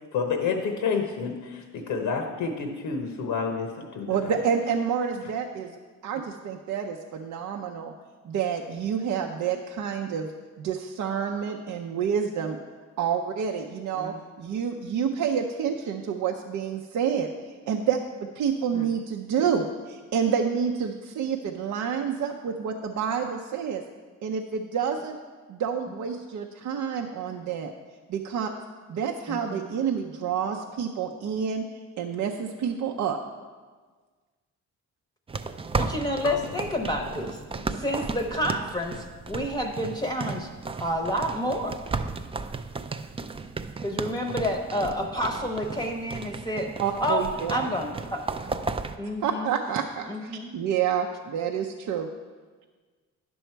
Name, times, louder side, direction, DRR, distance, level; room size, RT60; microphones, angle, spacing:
voice 1, 0.1-4.4, left 5 dB, 85° left, 4 dB, 1.0 m, -29 dB
voice 2, 4.1-5.7 6.0-7.9 8.2-10.3 10.6-12.6 13.0-17.3 17.7-23.8 24.2-25.2 25.5-27.7 28.1-28.5 28.9-31.6 32.0-33.2 46.8-47.7 49.2-52.1, right 7 dB, 70° right, 2 dB, 0.6 m, -28 dB
voice 3, 29.3-29.6 35.7-37.4 37.7-40.5 40.8-41.8 43.8-46.7 47.0-48.4 49.0-49.6 50.1-50.5, equal, 15° left, 1 dB, 0.8 m, -29 dB
sound 1, 35.3-49.0, right 4 dB, 20° right, 0.4 m, -34 dB
sound 2, 36.2-40.2, left 8 dB, 60° left, 0.6 m, -44 dB
10.0 x 6.3 x 4.5 m, 1.4 s
cardioid pair, 105°, 32 cm